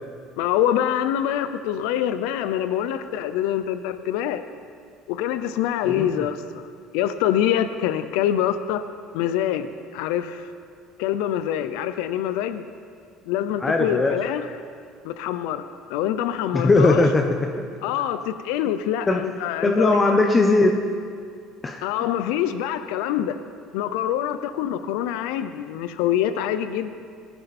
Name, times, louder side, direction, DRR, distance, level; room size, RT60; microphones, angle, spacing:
voice 1, 0.4-4.4 5.1-6.6 6.9-8.8 9.1-9.7 9.9-10.5 11.0-12.7 13.3-14.5 15.0-17.0 17.8-20.0 21.8-23.3 23.7-26.9, left 10 dB, 80° left, 11 dB, 0.6 m, -25 dB
voice 2, 13.6-14.2 16.5-17.6 19.1-19.2 19.6-20.8 21.6-21.8, left 2 dB, 25° left, 4 dB, 1.0 m, -19 dB
19.5 x 11.5 x 4.3 m, 2.3 s
supercardioid pair, 100°, 0 cm